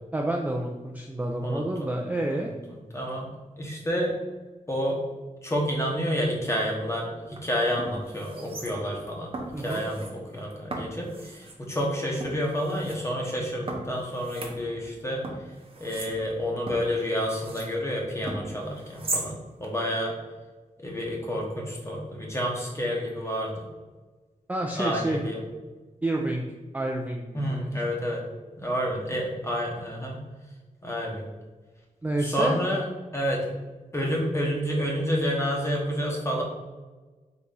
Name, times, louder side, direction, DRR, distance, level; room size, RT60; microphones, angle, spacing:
voice 1, 0.1-2.5 9.5-9.9 24.5-25.2 26.0-26.4 26.7-28.1 32.0-32.6, right 1 dB, 10° right, 0 dB, 0.3 m, -29 dB
voice 2, 2.9-3.3 3.6-4.1 4.7-5.0 5.4-15.3 15.8-20.1 20.8-23.5 24.8-25.4 27.3-28.2 28.6-30.2 30.8-31.3 32.2-32.8 33.1-33.5 33.9-36.4, equal, 20° left, -2 dB, 0.9 m, -29 dB
sound 1, 7.2-7.4 7.8-9.0 9.3-10.1 10.7-11.6 12.2-13.0 13.7-15.0 15.2-17.7 18.3-19.3 19.6-19.7, right 2 dB, 40° right, 0.7 m, -37 dB
4.0 x 2.9 x 3.7 m, 1.3 s
wide cardioid pair, 115°, 14 cm